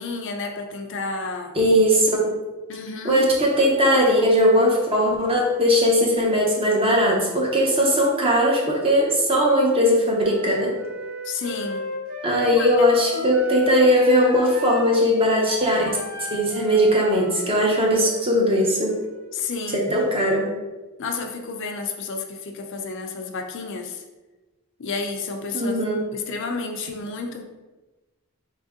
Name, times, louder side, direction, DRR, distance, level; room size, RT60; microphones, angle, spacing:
voice 1, 0.0-1.6 2.7-3.3 11.2-11.9 12.5-12.9 13.1-13.4 19.3-19.9 21.0-24.0 24.8-25.8 26.1-27.4, left 4 dB, 55° left, 4 dB, 0.4 m, -31 dB
voice 2, 1.6-2.1 3.0-10.7 12.2-15.8 16.3-18.9 19.7-20.5 25.5-26.0, equal, 25° right, -2 dB, 0.8 m, -19 dB
Wind instrument woodwind instrument, 10.1-19.9, left 2 dB, 70° right, 1.0 m, -36 dB
4.4 x 2.7 x 3.5 m, 1.2 s
head